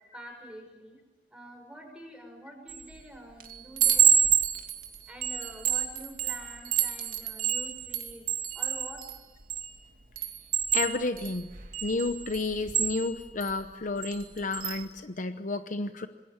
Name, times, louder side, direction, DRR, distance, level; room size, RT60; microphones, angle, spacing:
voice 1, 0.1-1.0 1.3-4.2 5.1-8.2 8.5-9.0, equal, 5° right, 3 dB, 6.2 m, -46 dB
Chime, 2.7-3.0 3.4-9.7 10.2-13.5 14.0-14.2 14.5-14.8, right 10 dB, 55° right, 2.5 m, -28 dB
voice 2, 10.7-11.5 11.8-16.1, left 3 dB, 45° left, 9 dB, 0.9 m, -31 dB
27.0 x 21.0 x 7.2 m, 1.2 s
head